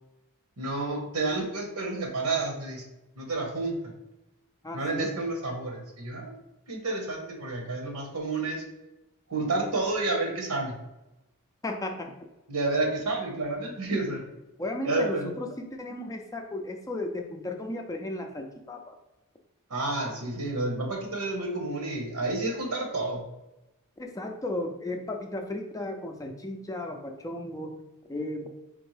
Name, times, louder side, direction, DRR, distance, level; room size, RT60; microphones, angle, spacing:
voice 1, 0.6-2.8 3.2-3.8 4.7-6.4 6.7-8.6 9.3-10.7 12.5-14.2 14.8-15.3 19.7-23.2, right 2 dB, 85° right, 1 dB, 1.2 m, -30 dB
voice 2, 4.6-5.1 11.6-12.1 14.6-19.0 24.0-27.7 28.1-28.5, left 2 dB, 15° left, 3 dB, 0.4 m, -35 dB
4.3 x 3.5 x 3.3 m, 0.96 s
head